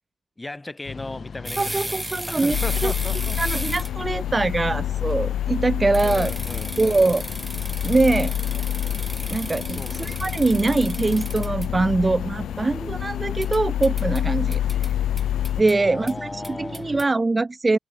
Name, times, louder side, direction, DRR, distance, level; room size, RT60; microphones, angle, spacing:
voice 1, 0.4-2.0 2.3-3.6 6.0-7.1 9.8-10.2 15.8-16.9, left 2 dB, 20° left, 3.6 m, -36 dB
sound 1, 0.8-17.0, left 5 dB, 55° left, 3.9 m, -39 dB
sound 2, 1.4-4.1 5.9-11.7 13.4-14.2 14.5-14.9 15.2-15.7 16.1-16.2 16.4-17.0, right 1 dB, 15° right, 1.7 m, -35 dB
voice 2, 1.6-2.6 2.8-2.9 3.4-6.3 6.8-7.3 7.8-8.3 9.3-14.9 15.6-17.8, right 3 dB, 30° right, 0.5 m, -23 dB
sound 3, 2.5-15.6, left 11 dB, 85° left, 0.3 m, -27 dB
supercardioid pair, 50°, 0 cm